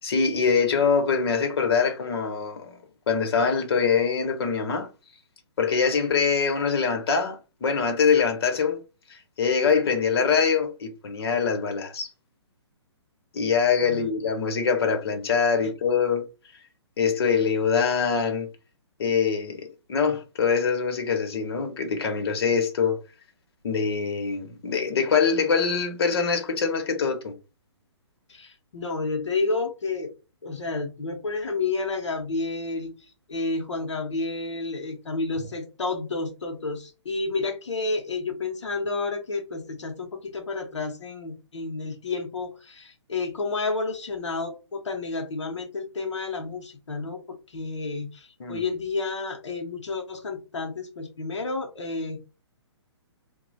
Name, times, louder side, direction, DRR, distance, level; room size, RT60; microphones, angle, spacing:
voice 1, 0.0-2.8 3.1-4.9 5.6-8.8 9.4-12.1 13.3-16.2 17.0-18.5 19.0-19.6 19.9-23.0 23.6-27.3 48.4-48.6, left 5 dB, 60° left, 1.0 m, -24 dB
voice 2, 28.3-30.1 30.4-52.2, left 3 dB, 85° left, 0.8 m, -30 dB
3.0 x 2.3 x 4.0 m
hypercardioid pair, 140°, 15 cm